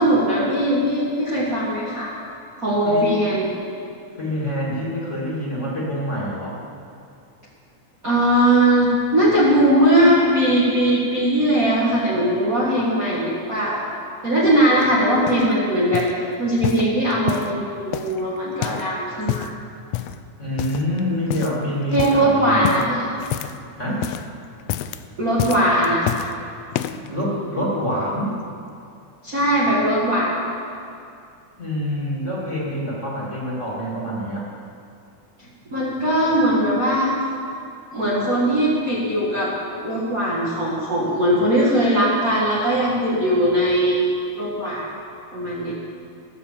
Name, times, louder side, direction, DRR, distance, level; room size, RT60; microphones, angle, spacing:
voice 1, 0.0-2.1 2.6-3.5 8.0-13.8 14.2-16.1 16.4-19.5 21.9-23.1 25.2-26.1 29.2-30.3 35.7-37.1 37.9-39.6 39.8-44.1 44.4-44.9 45.3-45.7, right 1 dB, 35° right, -7 dB, 1.9 m, -19 dB
voice 2, 4.2-6.6 20.4-22.8 23.8-24.1 27.0-28.4 31.6-34.4, equal, 25° left, -6 dB, 2.7 m, -26 dB
sound 1, 14.8-15.5 15.9-16.2 16.6-17.6 17.9-18.9 19.2-19.6 19.9-20.2 20.6-21.0 21.3-21.6 21.9-22.2 22.6-23.7 23.9-24.3 24.6-25.0 25.4-26.3 26.7-27.1 27.7-27.8, left 12 dB, 85° left, 1.4 m, -28 dB
18.0 x 7.4 x 6.9 m, 2.5 s
omnidirectional pair, 3.4 m